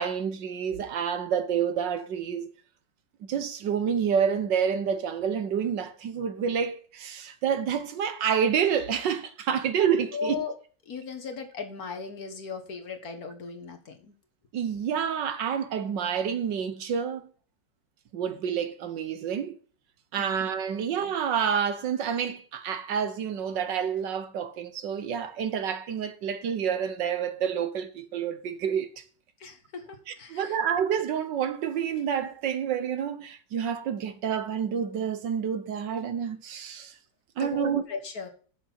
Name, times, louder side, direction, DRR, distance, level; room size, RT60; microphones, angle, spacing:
voice 1, 0.0-2.5 3.2-10.4 14.5-17.3 18.1-19.6 20.1-29.0 30.3-36.9 37.4-37.8, right 7 dB, 70° right, 1.7 m, -28 dB
voice 2, 10.1-10.6 10.9-14.2 20.2-20.4 20.8-20.9 29.4-30.6 37.4-38.3, left 5 dB, 55° left, 1.8 m, -37 dB
7.1 x 6.5 x 7.5 m
omnidirectional pair, 2.0 m